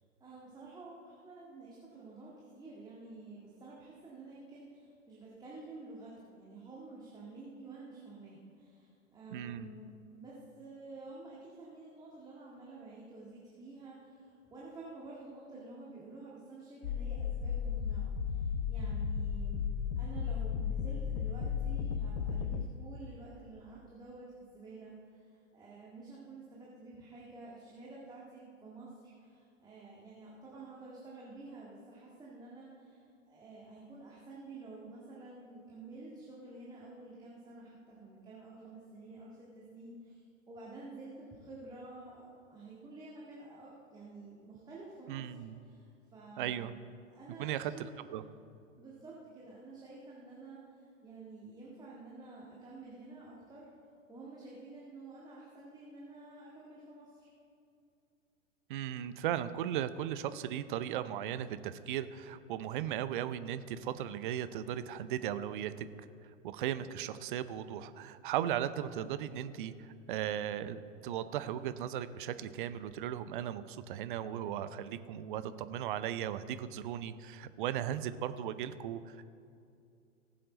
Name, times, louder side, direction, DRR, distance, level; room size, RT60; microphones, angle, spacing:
voice 1, 0.2-46.8 47.1-48.1 48.8-53.7 54.1-57.3, right 3 dB, 10° right, -5 dB, 1.8 m, -50 dB
voice 2, 9.3-9.7 45.1-45.6 46.4-46.7 47.4-48.2 58.7-65.9 66.4-79.3, right 10 dB, 40° right, 13 dB, 0.6 m, -37 dB
sound 1, 16.8-22.7, left 7 dB, 45° left, 0.7 m, -34 dB
19.0 x 7.6 x 4.0 m, 2.5 s
figure-of-eight pair, 105°, 39 cm